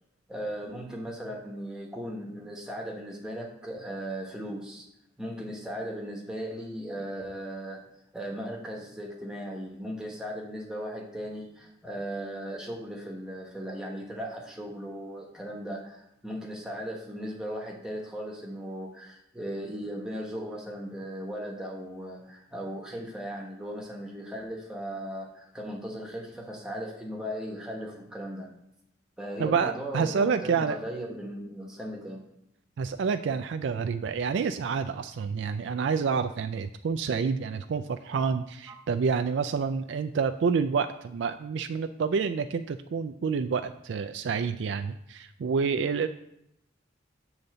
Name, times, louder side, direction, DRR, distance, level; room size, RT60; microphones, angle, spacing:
voice 1, 0.3-4.8 5.2-7.8 8.1-28.5 29.2-32.3 38.7-38.8, equal, 5° right, -1 dB, 1.3 m, -37 dB
voice 2, 29.4-30.8 32.8-46.1, right 5 dB, 65° right, 8 dB, 0.3 m, -28 dB
7.2 x 3.9 x 6.6 m, 0.80 s
head